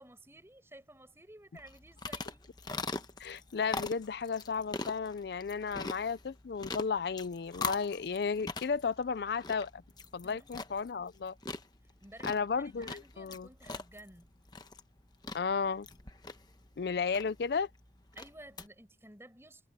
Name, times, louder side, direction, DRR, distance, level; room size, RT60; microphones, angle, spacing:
voice 1, 0.0-2.4 10.2-10.6 12.0-14.3 18.2-19.7, right 1 dB, 15° right, 5.5 m, -54 dB
sound 1, 1.6-18.7, left 3 dB, 20° left, 1.1 m, -42 dB
voice 2, 3.2-9.8 10.1-11.4 12.2-13.5 15.3-15.9 16.8-17.7, left 5 dB, 60° left, 0.4 m, -33 dB
head